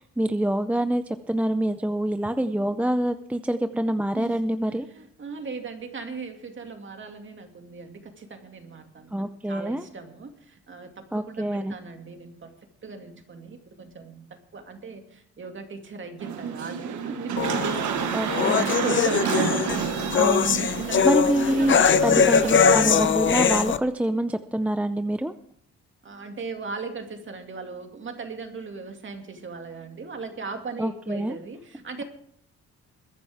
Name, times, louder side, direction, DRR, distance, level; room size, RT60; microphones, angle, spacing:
voice 1, 0.0-4.9 9.1-9.9 11.1-11.8 18.1-18.7 20.1-20.7 21.0-21.7 22.0-25.3 30.8-31.4, right 1 dB, 5° right, 10 dB, 0.5 m, -26 dB
voice 2, 4.9-12.5 12.8-22.1 22.4-22.6 26.0-32.0, right 4 dB, 40° right, 5 dB, 2.3 m, -38 dB
sound 1, 16.2-23.1, right 7 dB, 75° right, 1.5 m, -30 dB
sound 2, 17.4-23.8, left 6 dB, 40° left, 0.8 m, -21 dB
21.5 x 10.0 x 3.5 m, 0.68 s
cardioid pair, 90°, 30 cm